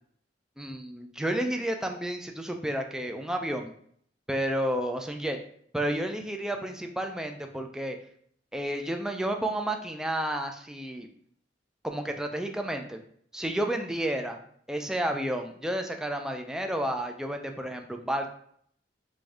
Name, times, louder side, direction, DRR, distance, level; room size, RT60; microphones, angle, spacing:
voice 1, 0.6-3.7 4.3-5.4 5.7-8.0 8.5-11.1 11.8-13.0 13.3-14.4 14.7-18.3, right 1 dB, 5° right, 4 dB, 0.3 m, -31 dB
3.3 x 2.6 x 3.5 m, 0.63 s
head